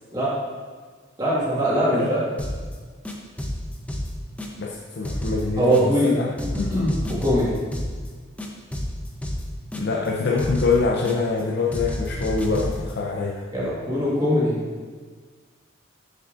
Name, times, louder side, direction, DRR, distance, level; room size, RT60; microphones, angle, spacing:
voice 1, 1.2-2.2 5.6-6.1 6.5-7.6 13.5-14.6, equal, 20° right, -7 dB, 1.7 m, -22 dB
sound 1, 2.4-2.7 3.0-4.8 5.0-6.1 6.4-8.1 8.4-10.1 10.4-11.4 11.7-12.9, left 1 dB, 5° left, 0.6 m, -30 dB
voice 2, 4.6-6.3 9.7-13.5, left 4 dB, 55° left, -2 dB, 0.5 m, -25 dB
7.1 x 6.8 x 2.5 m, 1.5 s
head